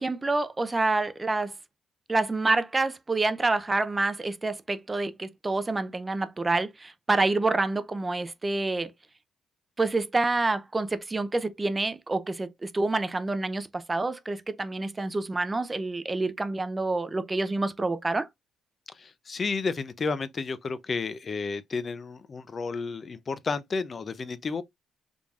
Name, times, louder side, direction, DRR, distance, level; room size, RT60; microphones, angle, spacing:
voice 1, 0.0-1.5 2.1-8.9 9.8-18.3, right 2 dB, 20° right, 0.5 m, -27 dB
voice 2, 18.9-24.6, left 4 dB, 40° left, 0.5 m, -32 dB
5.1 x 3.4 x 2.4 m
cardioid pair, 90°, 0 cm